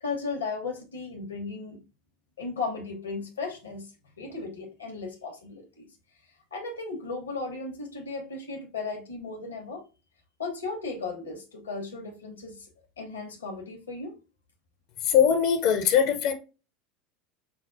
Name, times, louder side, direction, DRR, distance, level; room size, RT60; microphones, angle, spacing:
voice 1, 0.0-1.8 2.4-5.9 6.5-9.8 10.4-12.7 13.0-14.2, left 4 dB, 75° left, 0.8 m, -35 dB
voice 2, 15.0-16.3, left 8 dB, 55° left, 0.5 m, -21 dB
4.9 x 2.1 x 2.5 m
figure-of-eight pair, 75°, 0 cm